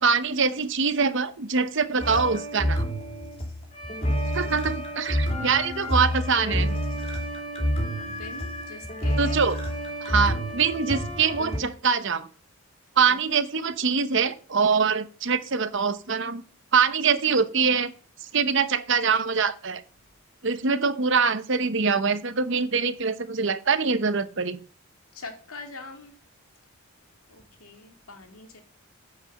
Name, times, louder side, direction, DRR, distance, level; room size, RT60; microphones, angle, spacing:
voice 1, 0.0-2.8 4.3-6.7 9.2-9.6 10.0-12.3 13.0-16.4 16.7-17.9 18.3-19.8 20.4-24.6, right 5 dB, 60° right, 0.9 m, -24 dB
sound 1, 2.0-11.6, equal, 30° left, 2.8 m, -28 dB
voice 2, 8.0-9.4 13.0-13.1 25.1-26.1 27.3-28.6, left 3 dB, 80° left, 2.3 m, -43 dB
9.5 x 5.4 x 6.5 m
head